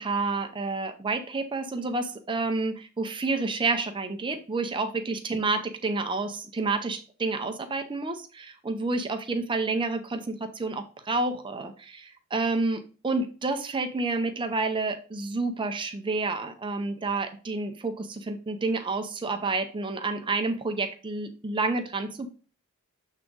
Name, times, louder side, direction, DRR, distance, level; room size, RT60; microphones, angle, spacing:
voice 1, 0.0-22.3, right 3 dB, 20° right, 7 dB, 0.5 m, -29 dB
7.3 x 3.5 x 3.8 m, 0.37 s
head